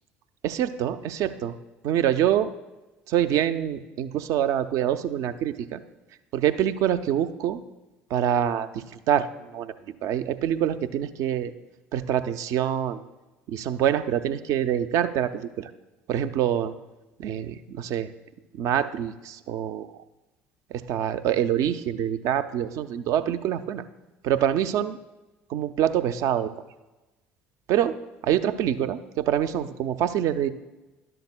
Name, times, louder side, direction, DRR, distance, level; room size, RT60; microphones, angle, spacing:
voice 1, 0.4-1.5 1.8-2.5 3.1-5.8 6.3-7.6 8.1-9.7 10.0-11.5 11.9-13.0 13.5-15.7 16.1-16.7 17.2-18.1 18.5-19.9 20.7-23.8 24.2-25.0 25.5-26.5 27.7-28.0 28.2-30.5, right 10 dB, 55° right, 11 dB, 0.5 m, -25 dB
12.0 x 11.0 x 2.2 m, 1.1 s
hypercardioid pair, 60°, 6 cm